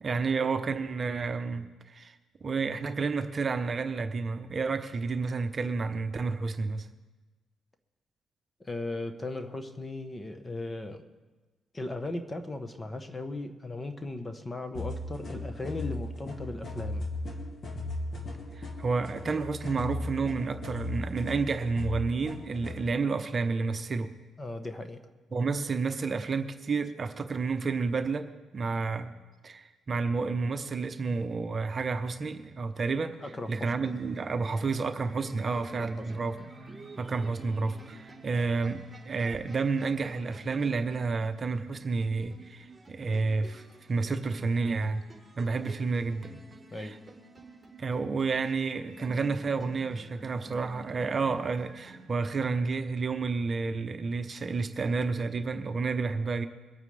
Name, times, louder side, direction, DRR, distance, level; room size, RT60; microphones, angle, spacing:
voice 1, 0.0-6.9 18.6-24.1 25.3-29.1 29.4-33.1 33.5-36.3 37.0-45.0 45.4-46.4 46.8-47.0 47.8-56.5, right 4 dB, 40° right, 7 dB, 0.9 m, -30 dB
voice 2, 8.6-11.1 11.7-17.1 24.4-25.0 33.2-33.7 35.8-36.1 46.7-47.0, left 2 dB, 20° left, 8 dB, 1.2 m, -37 dB
sound 1, 14.8-22.8, left 2 dB, 40° left, 2.1 m, -37 dB
sound 2, 32.7-52.1, right 2 dB, 10° right, 3.9 m, -50 dB
23.5 x 8.9 x 3.4 m, 1.3 s
cardioid pair, 90°, 0 cm